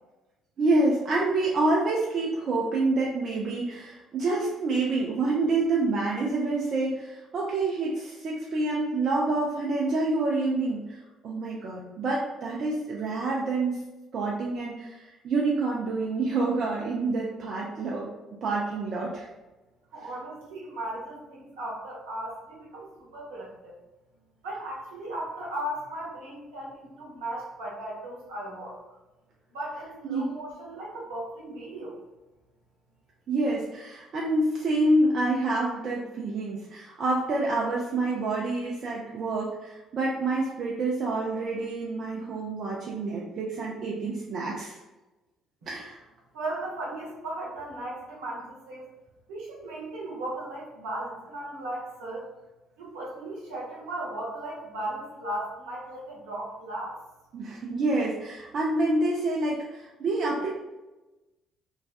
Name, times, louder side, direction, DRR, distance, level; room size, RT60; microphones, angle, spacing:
voice 1, 0.6-11.0 11.2-13.8 14.1-18.1 18.4-19.3 20.0-20.1 30.0-30.3 33.3-44.8 45.7-46.0 57.3-60.5, right 2 dB, 55° right, -3 dB, 0.4 m, -27 dB
voice 2, 19.9-23.7 24.4-28.8 29.5-32.0 46.3-48.8 49.3-52.3 52.8-57.0, right 1 dB, 75° right, -5 dB, 0.8 m, -36 dB
2.4 x 2.2 x 2.4 m, 1.1 s
hypercardioid pair, 50°, 0 cm